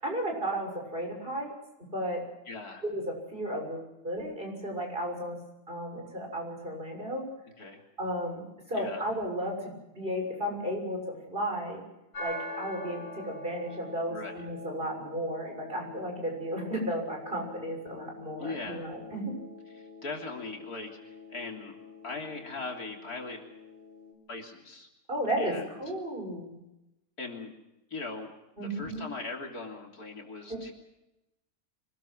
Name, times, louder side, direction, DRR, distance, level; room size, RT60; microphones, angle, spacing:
voice 1, 0.0-1.5 1.9-2.2 2.8-5.4 5.7-7.3 8.0-11.8 12.2-19.4 25.1-26.6 28.6-29.0 30.5-30.7, equal, 35° right, 1 dB, 7.0 m, -34 dB
voice 2, 2.5-2.8 7.6-7.8 8.8-9.0 14.1-14.3 18.4-18.9 19.8-21.8 22.0-23.4 24.3-24.9 25.4-25.6 27.2-27.5 27.9-28.3 28.6-30.7, left 3 dB, 70° left, 1 dB, 3.7 m, -39 dB
sound 1, 12.1-24.1, left 2 dB, 50° left, 8.6 m, -45 dB
25.5 x 19.5 x 6.2 m, 0.92 s
omnidirectional pair, 1.6 m